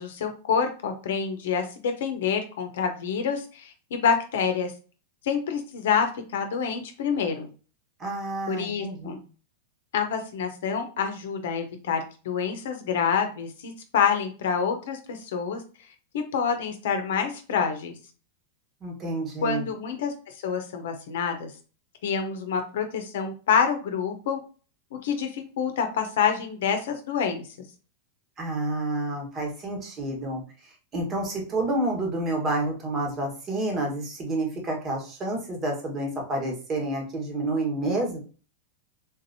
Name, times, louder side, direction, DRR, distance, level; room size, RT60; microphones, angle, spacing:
voice 1, 0.0-4.7 5.2-7.5 8.5-9.2 9.9-15.6 16.1-18.0 19.4-21.5 22.0-24.4 25.0-27.7, left 6 dB, 70° left, 6 dB, 0.7 m, -27 dB
voice 2, 8.0-9.2 18.8-19.7 28.4-30.4 30.9-38.2, right 2 dB, 30° right, 1 dB, 1.4 m, -29 dB
3.8 x 2.6 x 2.7 m, 0.37 s
hypercardioid pair, 105°, 0 cm